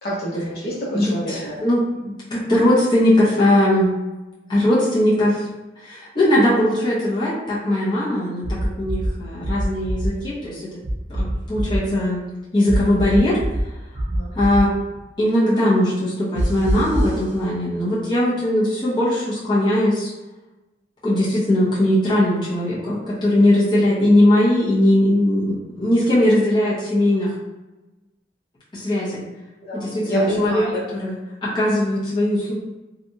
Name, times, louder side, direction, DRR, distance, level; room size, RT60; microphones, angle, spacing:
voice 1, 0.0-1.6 13.9-14.3 29.7-30.8, equal, 60° left, -6 dB, 1.0 m, -27 dB
voice 2, 0.9-3.9 4.5-5.4 5.8-10.7 11.2-12.2 12.5-13.4 14.3-14.7 15.2-20.1 21.0-27.3 28.7-29.2 29.7-30.6 30.9-32.5, left 1 dB, 25° left, -9 dB, 1.0 m, -19 dB
sound 1, 8.4-9.1 9.4-10.1 10.8-11.8 12.7-13.6 13.9-14.6 16.4-17.2, right 1 dB, 35° right, 0.9 m, -23 dB
3.3 x 2.5 x 2.7 m, 1.1 s
head